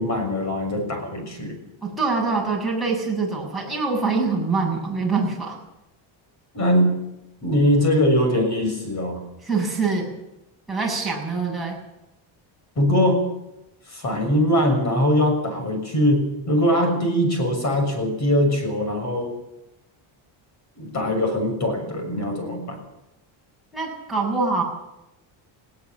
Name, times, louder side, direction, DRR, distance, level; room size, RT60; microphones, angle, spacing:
voice 1, 0.0-1.6 6.5-7.0 7.4-9.2 12.8-13.3 13.9-19.4 20.8-22.8, equal, 35° left, 5 dB, 6.6 m, -21 dB
voice 2, 1.8-5.6 9.4-10.1 10.7-11.8 23.7-24.6, right 4 dB, ahead, -4 dB, 7.5 m, -24 dB
20.0 x 17.5 x 7.7 m, 0.90 s
cardioid pair, 165°, 50 cm